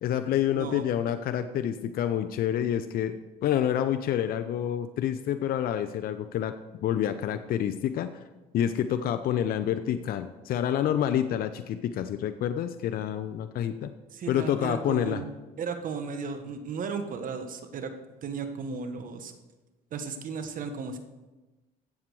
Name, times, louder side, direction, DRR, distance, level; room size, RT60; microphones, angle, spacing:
voice 1, 0.0-6.5 6.8-8.2 8.5-13.9 14.3-15.2, left 10 dB, 55° left, 9 dB, 0.6 m, -28 dB
voice 2, 0.5-0.9 14.1-15.3 15.6-17.9 18.2-19.3 19.9-21.0, right 5 dB, 50° right, 7 dB, 1.2 m, -35 dB
14.5 x 7.6 x 4.8 m, 1.1 s
cardioid pair, 100°, 18 cm